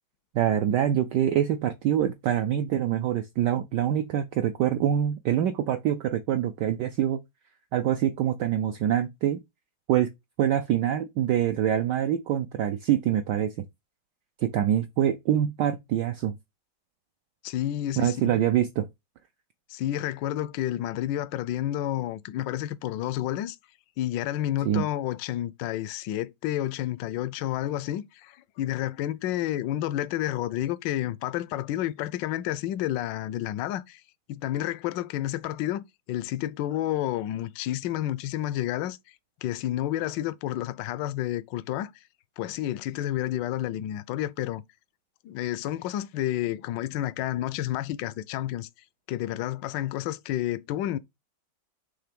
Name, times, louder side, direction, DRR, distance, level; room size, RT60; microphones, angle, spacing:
voice 1, 0.3-7.2 7.7-9.4 9.9-10.1 10.4-13.5 14.4-16.4 18.0-18.9 24.6-24.8, right 10 dB, 70° right, 1.0 m, -25 dB
voice 2, 17.4-18.4 19.7-23.6 24.0-34.0 34.3-39.0 39.4-41.9 42.4-44.6 45.2-48.7 49.1-51.0, left 13 dB, 75° left, 1.1 m, -30 dB
5.8 x 3.3 x 5.1 m
omnidirectional pair, 2.3 m